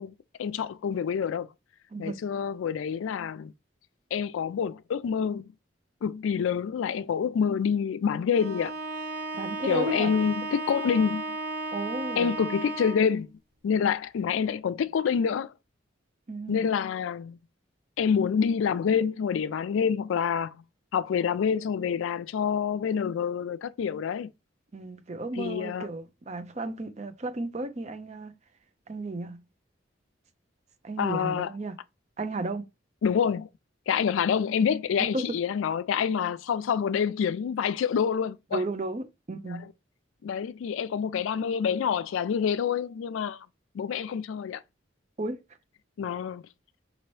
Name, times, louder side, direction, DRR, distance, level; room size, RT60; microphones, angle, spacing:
voice 1, 0.0-1.5 2.0-3.5 4.1-5.5 6.0-8.7 9.6-11.4 12.2-13.4 13.6-15.5 16.5-17.4 18.0-20.6 20.9-24.3 25.4-25.9 31.0-31.5 33.0-33.5 33.9-38.6 39.4-39.6 40.2-43.5 43.7-44.6 46.0-46.4, left 7 dB, 80° left, 0.3 m, -27 dB
Bowed string instrument, 8.3-13.2, right 2 dB, 75° right, 2.1 m, -34 dB
voice 2, 9.3-10.1 11.7-12.3 16.3-16.6 24.7-28.4 28.9-29.4 30.8-31.8 32.2-32.7 35.0-35.2 38.5-39.7 45.2-45.4, right 2 dB, 35° right, 0.5 m, -34 dB
5.1 x 2.9 x 3.1 m
head